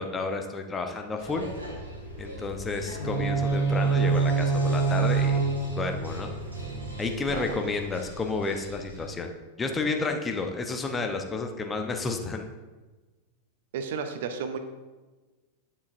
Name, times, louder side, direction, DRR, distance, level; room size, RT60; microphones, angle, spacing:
voice 1, 0.0-1.5 2.2-5.4 5.8-6.3 7.0-9.3 9.6-12.4, left 3 dB, 15° left, 4 dB, 0.8 m, -31 dB
sound 1, 1.2-9.1, left 1 dB, 80° right, 2.0 m, -40 dB
sound 2, 3.0-7.0, right 5 dB, 65° left, 1.4 m, -26 dB
voice 2, 13.7-14.6, right 6 dB, 55° right, 8 dB, 0.7 m, -32 dB
9.5 x 7.1 x 2.6 m, 1.2 s
figure-of-eight pair, 90°, 0 cm